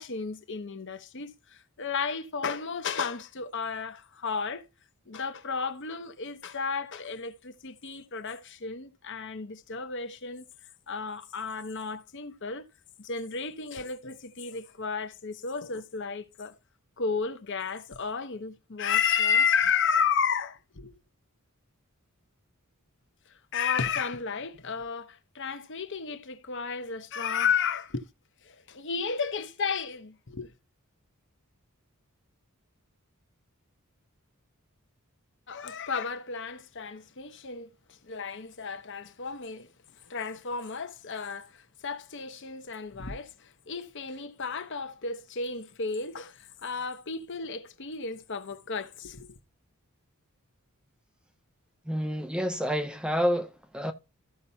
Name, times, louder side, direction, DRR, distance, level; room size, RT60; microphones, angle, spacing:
voice 1, 0.0-4.7 5.1-10.4 10.9-12.6 13.0-16.5 17.0-20.9 23.5-28.1 28.4-30.5 35.5-39.7 40.1-49.4, left 6 dB, 55° left, 1.0 m, -32 dB
voice 2, 51.9-53.9, equal, 5° right, 0.6 m, -29 dB
14.0 x 5.5 x 2.8 m
head